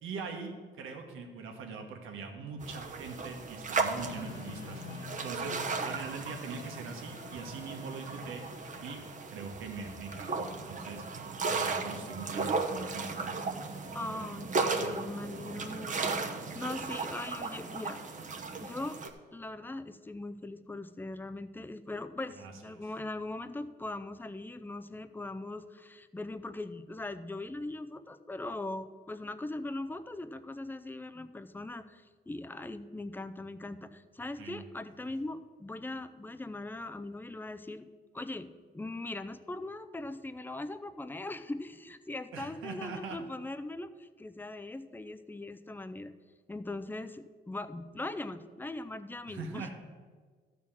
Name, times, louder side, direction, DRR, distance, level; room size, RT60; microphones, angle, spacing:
voice 1, 0.0-5.6 5.8-8.4 8.8-9.0 9.3-11.0 11.5-13.5 22.4-22.5 34.4-34.6 42.3-43.2 49.3-49.7, right 4 dB, 85° right, 3 dB, 1.5 m, -42 dB
sound 1, 2.6-19.1, right 4 dB, 40° right, 1.0 m, -36 dB
sound 2, 3.9-9.1, left 3 dB, 50° left, 1.3 m, -47 dB
voice 2, 13.9-18.0 18.6-19.0 19.3-37.9 38.1-46.1 46.5-49.7, left 2 dB, 10° left, 11 dB, 0.5 m, -40 dB
12.5 x 4.2 x 7.3 m, 1.5 s
cardioid pair, 90°, 20 cm